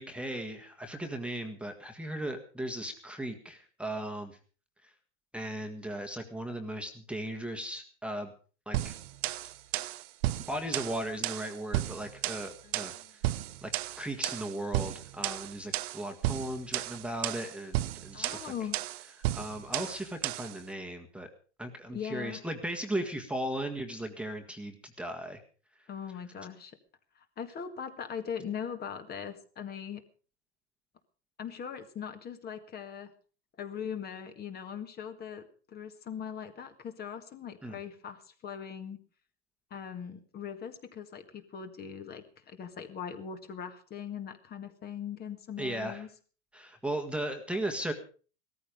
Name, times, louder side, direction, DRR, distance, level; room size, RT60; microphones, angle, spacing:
voice 1, 0.0-4.4 4.8-4.9 5.3-8.3 8.7-9.0 10.5-12.9 13.6-13.7 14.0-18.5 19.3-21.3 21.6-25.4 37.6-37.8 45.6-46.0 46.5-47.9, right 1 dB, 5° right, 4 dB, 1.7 m, -37 dB
sound 1, 8.7-20.6, right 15 dB, 60° right, 1.1 m, -34 dB
voice 2, 12.6-13.1 18.1-18.8 21.9-22.4 25.9-26.8 27.2-30.0 31.4-33.1 33.6-39.0 39.7-46.1, left 7 dB, 25° left, 7 dB, 1.9 m, -40 dB
17.0 x 14.0 x 5.1 m, 0.39 s
hypercardioid pair, 125°, 35 cm